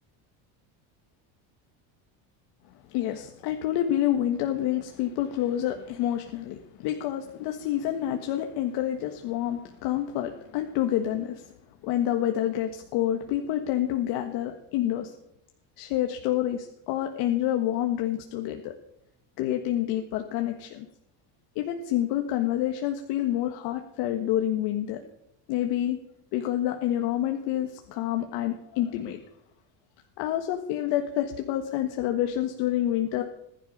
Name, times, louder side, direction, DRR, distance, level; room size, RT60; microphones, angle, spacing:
voice 1, 2.9-11.5 11.8-15.1 15.8-18.7 19.4-20.9 21.5-25.0 25.5-26.0 26.3-29.2 30.2-33.2, left 12 dB, 65° left, 4 dB, 1.5 m, -28 dB
20.5 x 11.0 x 5.5 m, 0.81 s
cardioid pair, 175°, 42 cm